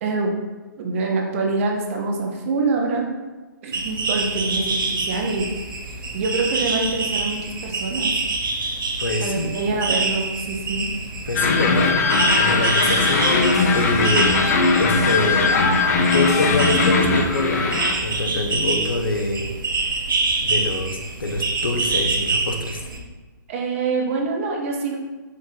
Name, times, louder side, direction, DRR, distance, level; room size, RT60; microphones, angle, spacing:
voice 1, 0.0-0.4 0.8-3.0 3.6-5.5 6.1-8.1 9.2-10.9 23.5-25.0, right 3 dB, 40° right, 1 dB, 0.8 m, -25 dB
sound 1, 3.7-23.0, right 3 dB, 80° right, 0.8 m, -26 dB
voice 2, 9.0-9.5 11.3-15.6 16.0-19.5 19.8-19.9 20.4-22.8, left 2 dB, 85° left, 3 dB, 0.7 m, -25 dB
sound 2, 11.3-17.9, left 3 dB, 45° left, 0.6 m, -19 dB
5.3 x 2.6 x 3.8 m, 1.3 s
hypercardioid pair, 145°, 11 cm